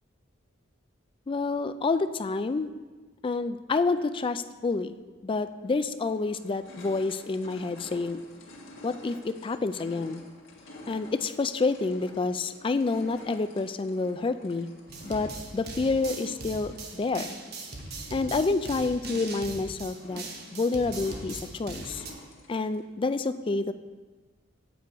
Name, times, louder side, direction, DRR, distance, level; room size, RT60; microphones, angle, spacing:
voice 1, 1.3-2.7 3.2-5.0 5.2-8.2 8.8-10.2 10.9-14.7 15.0-17.3 18.1-20.2 20.5-22.0 22.5-23.7, left 3 dB, 25° left, 11 dB, 0.3 m, -28 dB
sound 1, 6.0-22.8, left 1 dB, 85° left, 1.6 m, -49 dB
sound 2, 14.9-22.1, right 3 dB, 55° right, 1.1 m, -40 dB
8.2 x 7.7 x 4.7 m, 1.4 s
head